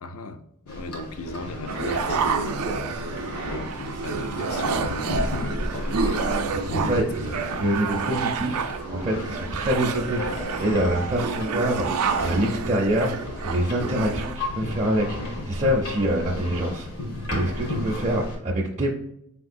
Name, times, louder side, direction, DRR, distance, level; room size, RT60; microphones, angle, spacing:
voice 1, 0.0-6.2 6.7-7.1 17.6-17.8, left 3 dB, 65° left, 9 dB, 0.5 m, -37 dB
sound 1, 0.7-18.4, left 1 dB, 90° left, 1.4 m, -33 dB
sound 2, 1.7-14.5, right 5 dB, 85° right, 0.4 m, -29 dB
voice 2, 7.6-16.9 17.3-18.9, right 1 dB, 30° right, -2 dB, 0.5 m, -25 dB
4.5 x 3.6 x 2.5 m, 0.75 s
head